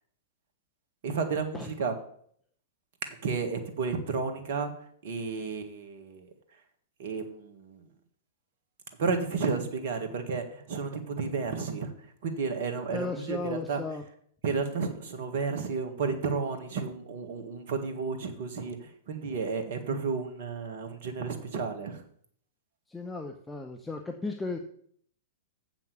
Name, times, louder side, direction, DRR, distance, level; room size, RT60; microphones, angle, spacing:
voice 1, 1.0-1.9 3.2-6.3 7.0-7.9 9.0-13.8 14.4-22.0, right 5 dB, 55° right, 7 dB, 1.6 m, -32 dB
voice 2, 12.9-14.0 22.9-24.6, left 3 dB, 10° left, 3 dB, 0.8 m, -35 dB
7.4 x 6.0 x 6.9 m, 0.63 s
figure-of-eight pair, 105°, 0 cm